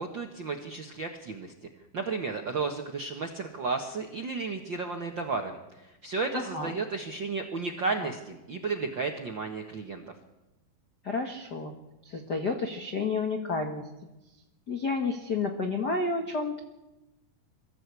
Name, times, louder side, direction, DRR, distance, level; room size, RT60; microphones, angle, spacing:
voice 1, 0.0-1.7 1.9-10.0, right 4 dB, 85° right, 3 dB, 1.0 m, -33 dB
voice 2, 6.3-6.7 11.0-11.7 12.0-13.8 14.7-16.6, left 4 dB, 60° left, 4 dB, 1.0 m, -30 dB
23.0 x 14.5 x 8.3 m, 1.0 s
omnidirectional pair, 4.4 m